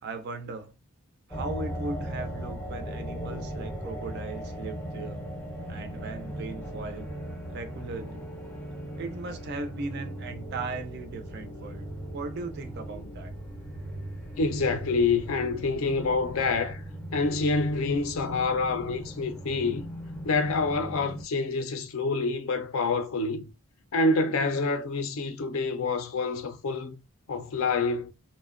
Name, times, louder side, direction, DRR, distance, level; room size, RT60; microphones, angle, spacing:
voice 1, 0.0-0.8 1.3-5.3 5.7-7.1 7.5-8.2 9.0-11.8 12.1-13.3, right 3 dB, 45° right, 0.4 m, -37 dB
sound 1, 1.3-21.3, equal, 10° left, 0.5 m, -38 dB
voice 2, 14.4-16.8 17.1-19.9 20.2-23.5 23.9-27.0 27.3-28.1, left 3 dB, 65° left, 0.4 m, -27 dB
2.7 x 2.1 x 2.4 m
head